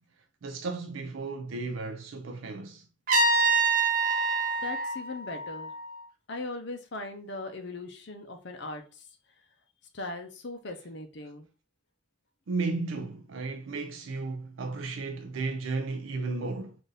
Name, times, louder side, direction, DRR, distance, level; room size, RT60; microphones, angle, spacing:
voice 1, 0.4-2.8 12.5-16.8, right 3 dB, 75° right, 0.4 m, -34 dB
Trumpet, 3.1-6.0, right 3 dB, 45° right, 0.8 m, -26 dB
voice 2, 4.6-5.7 6.3-8.8 9.9-11.5, left 2 dB, 55° left, 0.7 m, -39 dB
3.8 x 2.6 x 3.9 m
head